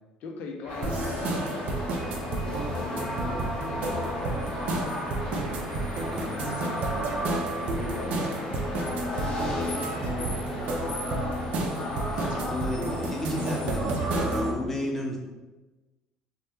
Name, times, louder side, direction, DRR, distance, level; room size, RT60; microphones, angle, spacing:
voice 1, 0.2-4.6 6.6-7.1 7.6-11.0, left 3 dB, 65° left, 0.4 m, -41 dB
sound 1, 0.6-12.4, right 1 dB, 40° right, 0.9 m, -44 dB
sound 2, 0.7-14.5, left 1 dB, 40° left, 0.9 m, -35 dB
sound 3, 0.8-14.5, right 2 dB, 60° right, 0.4 m, -31 dB
voice 2, 6.1-6.5 12.1-15.2, left 1 dB, 10° left, 0.7 m, -32 dB
2.0 x 2.0 x 3.0 m
hypercardioid pair, 65°, 3 cm